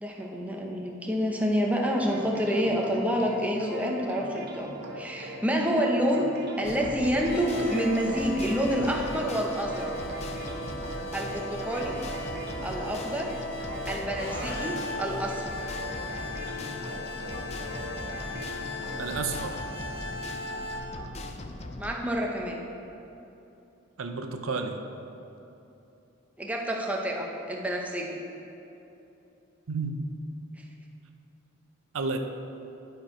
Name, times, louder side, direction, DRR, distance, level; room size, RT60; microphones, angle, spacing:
voice 1, 0.0-6.3 6.6-9.9 11.1-11.9 12.6-13.3 13.9-15.5 21.8-22.6 26.4-28.2, equal, 5° right, -1 dB, 0.7 m, -28 dB
sound 1, 1.8-19.0, right 1 dB, 55° right, 0.9 m, -41 dB
sound 2, 6.6-22.0, left 2 dB, 30° left, 0.5 m, -40 dB
sound 3, 7.1-20.8, left 1 dB, 50° left, 1.5 m, -37 dB
voice 2, 19.0-19.6 24.0-24.8 29.7-30.1 31.9-32.2, right 4 dB, 90° right, 6 dB, 0.6 m, -31 dB
11.5 x 4.5 x 4.9 m, 2.9 s
head